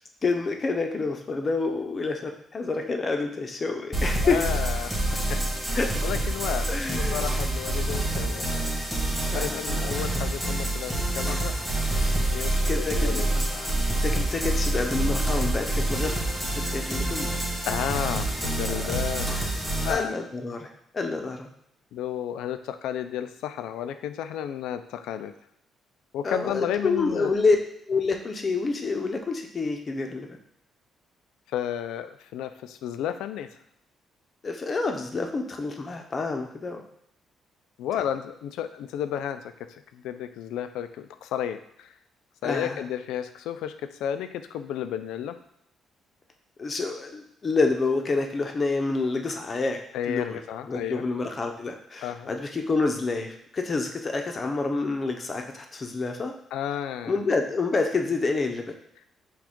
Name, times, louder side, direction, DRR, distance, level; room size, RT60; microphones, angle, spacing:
voice 1, 0.2-4.4 5.7-5.9 6.7-7.2 9.3-9.9 12.7-13.5 14.0-16.2 16.6-17.3 18.7-18.8 19.9-20.7 20.9-21.5 26.2-27.6 27.9-30.3 34.4-36.8 42.4-42.8 46.6-49.8 50.1-50.4 50.7-56.3 57.1-58.7, left 3 dB, 35° left, 4 dB, 0.7 m, -28 dB
sound 1, 3.9-19.9, right 1 dB, ahead, 1.6 m, -27 dB
voice 2, 4.2-5.4 6.0-6.7 7.0-8.8 9.3-11.5 12.3-13.8 17.7-19.4 19.8-20.2 21.9-25.3 26.1-27.4 31.5-33.5 37.8-39.4 39.7-41.9 42.4-43.7 44.0-45.4 49.9-51.0 52.0-52.3 56.5-57.1, left 10 dB, 90° left, 9 dB, 0.3 m, -32 dB
6.0 x 2.4 x 3.6 m, 0.74 s
cardioid pair, 90°, 0 cm